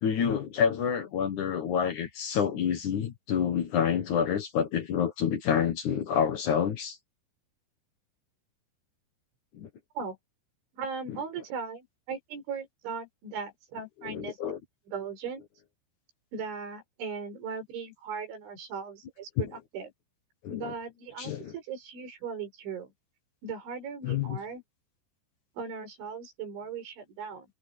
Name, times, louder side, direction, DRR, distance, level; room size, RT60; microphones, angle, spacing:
voice 1, 0.0-7.0 9.5-9.7 14.1-14.6 19.4-19.5 20.4-20.7 21.2-21.5 24.0-24.4, left 7 dB, 65° left, 2.1 m, -28 dB
voice 2, 10.7-14.4 14.9-15.4 16.3-19.9 20.5-22.9 23.4-24.6 25.6-27.5, right 5 dB, 75° right, 8.3 m, -38 dB
omnidirectional pair, 5.4 m